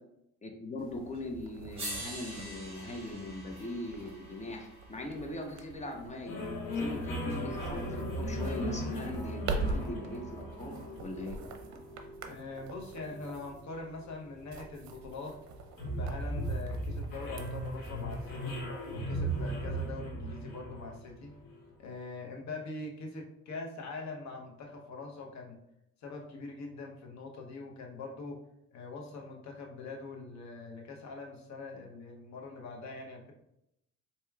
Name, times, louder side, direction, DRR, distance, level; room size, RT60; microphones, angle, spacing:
voice 1, 0.4-11.4, left 1 dB, 25° left, 3 dB, 0.7 m, -41 dB
sound 1, 0.8-19.9, right 3 dB, 65° right, 0.6 m, -44 dB
sound 2, 1.1-1.2 1.8-6.0 7.3-7.4, right 1 dB, 20° right, 1.3 m, -45 dB
sound 3, 6.3-21.7, equal, 85° left, 1.1 m, -38 dB
voice 2, 12.2-15.4 16.0-18.6 18.9-21.3 21.8-25.5 26.0-28.4 28.7-33.3, left 3 dB, 65° left, 1 dB, 0.9 m, -43 dB
4.5 x 2.9 x 2.3 m, 0.81 s
cardioid pair, 90°, 30 cm